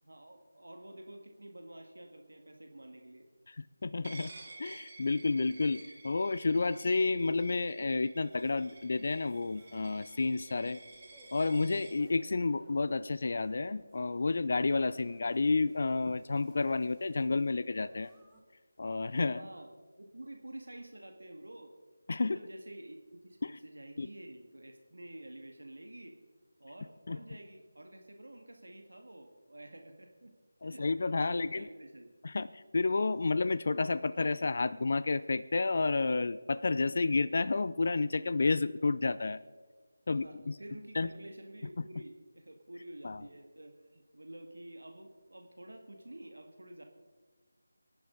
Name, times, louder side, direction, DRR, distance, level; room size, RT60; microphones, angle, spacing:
voice 1, 0.0-3.3 19.2-19.7 20.0-21.7 22.2-26.2 26.6-30.3 30.6-32.1 40.1-46.8, right 1 dB, 75° right, 4 dB, 1.8 m, -49 dB
voice 2, 3.5-4.3 4.6-10.8 11.3-18.1 18.8-19.4 22.1-22.4 23.4-23.5 24.0-24.1 27.1-27.2 30.6-31.7 32.2-39.4 40.1-40.5 40.9-41.1 43.0-43.2, left 3 dB, 50° left, 15 dB, 0.4 m, -30 dB
Coin (dropping), 4.0-12.0, right 3 dB, 40° right, 2.7 m, -52 dB
sound 1, 8.2-18.4, right 1 dB, 5° right, 1.5 m, -64 dB
23.5 x 10.5 x 3.9 m, 1.4 s
figure-of-eight pair, 160°, 0 cm